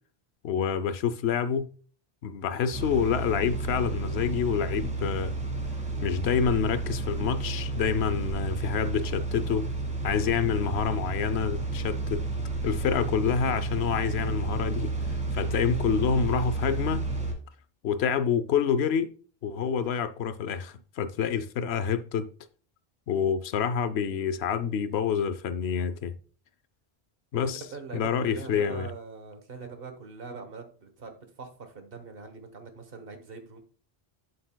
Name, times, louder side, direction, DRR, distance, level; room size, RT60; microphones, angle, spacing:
voice 1, 0.4-1.7 2.2-5.4 6.0-9.7 10.0-12.2 12.6-14.9 15.3-17.0 17.8-19.1 19.4-22.3 23.1-26.1 27.3-27.6 27.9-28.9, left 7 dB, 85° left, 0.9 m, -27 dB
sound 1, 2.7-17.3, right 3 dB, 5° right, 1.5 m, -31 dB
voice 2, 27.3-33.6, right 4 dB, 65° right, 1.3 m, -43 dB
8.7 x 7.7 x 2.2 m
omnidirectional pair, 1.0 m